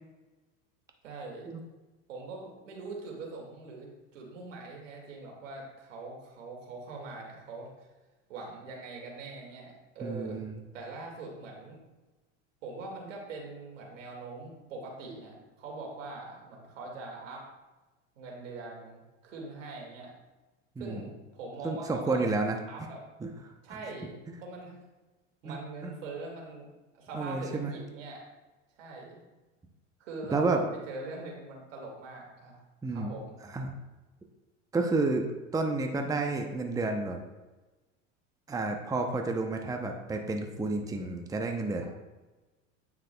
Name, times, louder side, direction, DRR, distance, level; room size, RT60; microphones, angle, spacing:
voice 1, 1.0-1.5 2.1-7.9 8.3-10.4 10.7-11.8 12.6-17.4 18.2-20.1 20.8-22.2 22.7-23.0 23.6-24.8 25.4-26.7 26.9-28.2 28.8-29.2 30.0-32.6 32.9-33.4, right 3 dB, 80° right, -1 dB, 2.2 m, -42 dB
voice 2, 10.0-10.6 20.8-21.1 21.6-22.6 23.2-23.3 25.4-25.6 25.8-25.9 27.1-27.7 30.3-30.6 32.8-33.1 33.5-33.7 34.7-35.3 35.5-37.2 38.5-41.8, right 3 dB, 10° right, 3 dB, 0.7 m, -30 dB
9.0 x 5.9 x 2.3 m, 1.1 s
hypercardioid pair, 90°, 38 cm